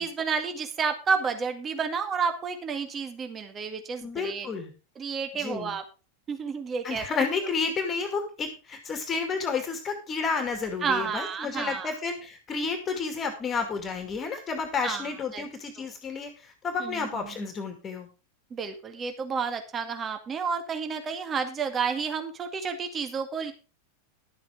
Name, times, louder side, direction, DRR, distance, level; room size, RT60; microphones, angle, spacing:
voice 1, 0.0-4.5 5.0-5.8 6.3-7.1 10.8-11.9 14.8-15.1 15.3-15.4 15.8-15.9 16.8-17.3 18.5-23.5, right 5 dB, 25° right, 6 dB, 2.0 m, -30 dB
voice 2, 4.0-4.7 5.4-5.8 6.8-18.1, left 4 dB, 25° left, 7 dB, 2.2 m, -31 dB
12.0 x 7.9 x 4.9 m, 0.32 s
figure-of-eight pair, 90°, 0 cm